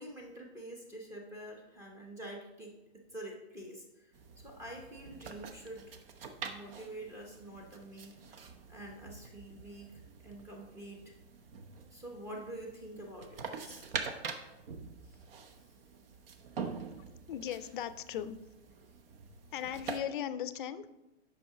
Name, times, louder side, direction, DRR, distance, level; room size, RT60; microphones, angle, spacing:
voice 1, 0.0-6.0 6.4-11.1 11.9-13.9 15.0-15.2 15.5-15.6, right 1 dB, 10° right, 0 dB, 0.7 m, -47 dB
sound 1, 4.1-20.0, right 5 dB, 55° right, 0.9 m, -45 dB
voice 2, 17.0-18.4 19.5-20.9, left 9 dB, 50° left, 13 dB, 0.5 m, -38 dB
8.4 x 5.8 x 3.6 m, 0.98 s
hypercardioid pair, 155°, 34 cm